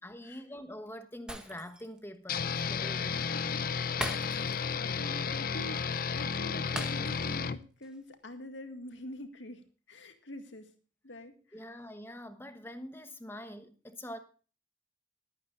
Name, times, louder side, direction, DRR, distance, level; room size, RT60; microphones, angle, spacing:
voice 1, 0.0-3.2 11.5-14.2, left 1 dB, 10° left, 1.1 m, -45 dB
Shatter, 1.3-2.0 2.3-2.5 4.0-4.8 5.1-5.2 6.8-7.5 7.8-8.0, right 1 dB, 5° right, 1.5 m, -40 dB
sound 1, 2.3-7.6, left 6 dB, 50° left, 0.6 m, -33 dB
voice 2, 3.1-3.9 4.2-10.7 11.0-11.8, left 1 dB, 75° left, 2.0 m, -46 dB
20.5 x 9.2 x 2.5 m
head